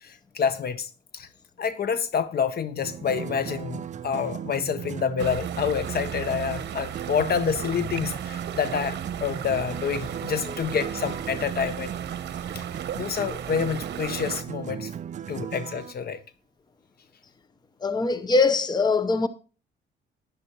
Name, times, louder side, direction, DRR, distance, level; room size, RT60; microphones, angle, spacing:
voice 1, 0.0-1.3 1.6-11.9 12.5-12.6 13.0-14.9 15.3-16.2, left 7 dB, 50° left, 0.9 m, -28 dB
sound 1, 2.8-15.9, right 8 dB, 40° right, 0.4 m, -36 dB
sound 2, 5.2-14.4, right 9 dB, 60° right, 0.9 m, -36 dB
voice 2, 17.8-19.3, left 3 dB, 20° left, 0.8 m, -22 dB
11.0 x 9.9 x 3.0 m
cardioid pair, 90°, 20 cm